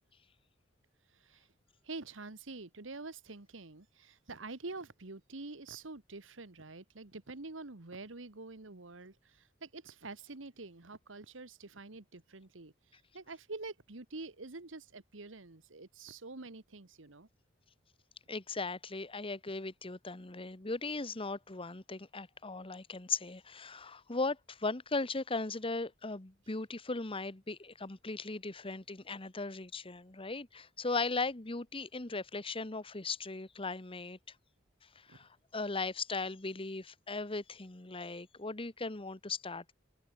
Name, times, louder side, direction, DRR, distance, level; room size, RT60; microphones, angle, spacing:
voice 1, 1.8-12.7 13.1-17.3 35.1-35.2, right 3 dB, 80° right, 1.6 m, -47 dB
voice 2, 18.3-34.2 34.9-39.7, left 3 dB, 30° left, 1.3 m, -38 dB
head